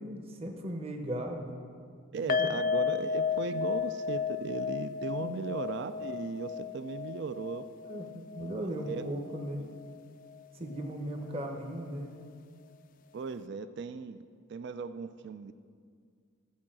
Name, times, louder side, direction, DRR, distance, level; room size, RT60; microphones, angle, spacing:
voice 1, 0.0-1.5 2.4-2.5 5.2-5.5 7.8-9.6 10.5-12.1, right 1 dB, 30° right, 2 dB, 1.0 m, -37 dB
voice 2, 2.1-7.6 8.9-9.0 9.6-9.7 13.1-14.2 14.5-15.5, right 5 dB, 60° right, 12 dB, 0.4 m, -37 dB
sound 1, 2.3-9.5 9.8-9.9 10.3-10.4, left 6 dB, 45° left, 0.3 m, -33 dB
13.5 x 4.7 x 7.4 m, 2.1 s
head